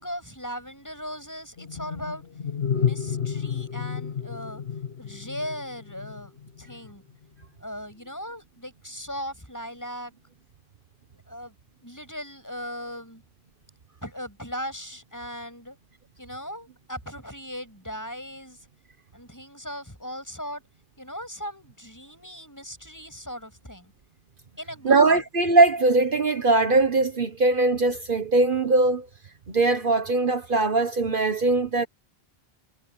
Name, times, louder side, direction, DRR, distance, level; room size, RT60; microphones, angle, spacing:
voice 1, 0.0-2.2 2.7-4.6 5.0-7.0 7.6-10.1 11.1-11.5 11.8-13.2 14.0-15.8 16.2-18.7 19.1-20.6 21.0-23.9 24.6-25.2, equal, 15° left, 6.8 m, -38 dB
sound 1, 1.6-6.9, left 7 dB, 80° left, 1.6 m, -31 dB
voice 2, 24.8-29.1 29.5-31.9, right 3 dB, 55° right, 1.4 m, -21 dB
omnidirectional pair, 1.0 m